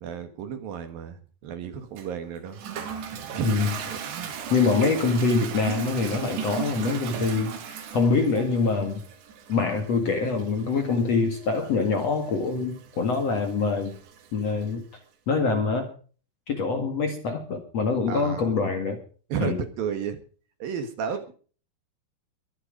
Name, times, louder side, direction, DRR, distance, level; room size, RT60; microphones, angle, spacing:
voice 1, 0.0-2.6 3.3-4.3 18.1-18.5 19.3-20.2 20.6-21.3, right 7 dB, 65° right, 8 dB, 3.1 m, -33 dB
Toilet flush, 2.0-14.7, right 8 dB, 90° right, 4.3 m, -37 dB
voice 2, 3.4-4.0 4.5-9.0 9.5-14.0 14.3-14.8 15.3-15.9 16.5-19.0 19.4-19.6, left 4 dB, 50° left, 5 dB, 2.4 m, -25 dB
23.0 x 8.1 x 5.2 m, 0.40 s
omnidirectional pair, 4.8 m